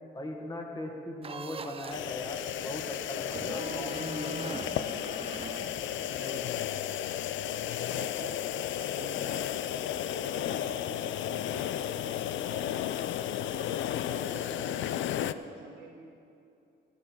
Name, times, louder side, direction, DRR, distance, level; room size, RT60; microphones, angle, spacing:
voice 1, 0.1-4.9 6.2-6.4, left 1 dB, 20° left, 2 dB, 1.9 m, -39 dB
sound 1, 1.2-2.1 3.2-6.3, right 5 dB, 30° right, 0.5 m, -42 dB
sound 2, 1.9-15.3, left 11 dB, 70° left, 0.4 m, -33 dB
voice 2, 5.9-6.9 7.5-9.6 9.9-12.8 13.2-15.9, right 3 dB, 75° right, -5 dB, 1.8 m, -47 dB
14.5 x 11.0 x 4.7 m, 2.6 s
cardioid pair, 90°, 20 cm